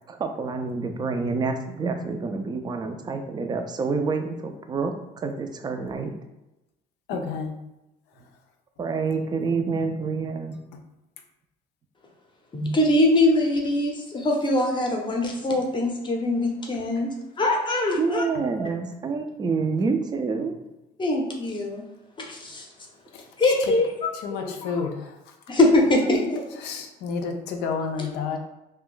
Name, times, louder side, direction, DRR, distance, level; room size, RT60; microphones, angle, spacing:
voice 1, 0.1-6.1 7.1-7.2 8.8-10.6 18.0-20.6, right 4 dB, 25° right, 6 dB, 0.4 m, -28 dB
voice 2, 7.1-7.6 10.7-10.8 18.3-18.4 23.1-23.2 24.2-25.2 26.6-28.4, left 5 dB, 85° left, 4 dB, 0.5 m, -30 dB
voice 3, 12.5-17.1 17.4-18.2 21.0-21.8 22.2-22.7 23.4-24.9 25.5-26.4 28.0-28.4, left 1 dB, 30° left, 1 dB, 0.6 m, -23 dB
2.4 x 2.2 x 3.7 m, 0.95 s
cardioid pair, 110°, 17 cm